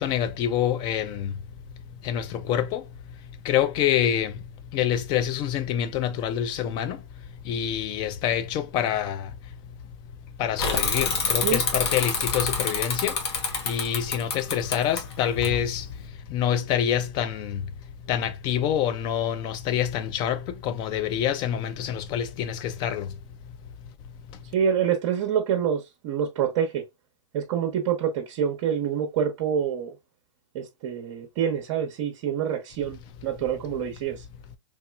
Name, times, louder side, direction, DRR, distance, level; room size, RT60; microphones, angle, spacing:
voice 1, 0.0-1.3 1.9-3.0 3.3-7.0 7.3-9.3 10.4-17.7 18.0-23.2 24.3-24.5, left 10 dB, 30° left, 0.4 m, -27 dB
Bicycle / Mechanisms, 10.6-16.0, left 4 dB, 55° left, 1.0 m, -28 dB
voice 2, 24.5-26.8 27.3-29.9 30.5-34.1, right 8 dB, 45° right, 0.8 m, -26 dB
3.1 x 2.9 x 2.3 m
hypercardioid pair, 140°, 16 cm